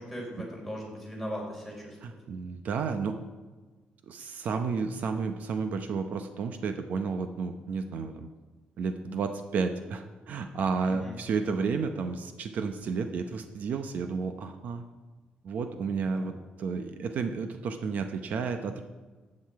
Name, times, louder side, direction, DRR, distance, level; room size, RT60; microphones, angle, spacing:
voice 1, 0.0-2.2 10.9-11.1 16.0-16.2, equal, ahead, -2 dB, 3.9 m, -39 dB
voice 2, 2.0-3.2 4.0-8.3 8.8-14.8 15.4-18.8, right 5 dB, 60° right, 7 dB, 0.8 m, -32 dB
14.0 x 8.7 x 4.7 m, 1.3 s
cardioid pair, 155°, 3 cm